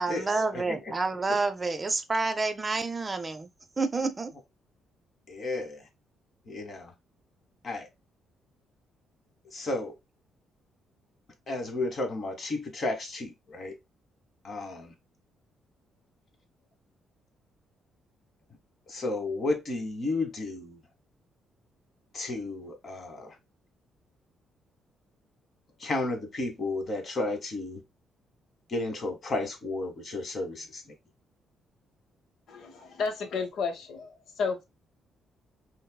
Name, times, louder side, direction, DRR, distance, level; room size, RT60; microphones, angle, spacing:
voice 1, 0.0-3.5 3.8-4.3, right 3 dB, 25° right, 0.5 m, -29 dB
voice 2, 5.3-5.9 6.5-6.9 7.6-7.9 9.5-9.9 11.5-13.7 14.4-14.9 18.9-20.8 22.1-23.4 25.8-27.8 28.7-30.8, left 2 dB, 45° left, 1.2 m, -32 dB
voice 3, 32.5-34.1 34.4-34.6, left 5 dB, 70° left, 0.7 m, -32 dB
5.4 x 2.0 x 2.2 m
cardioid pair, 90°, 0 cm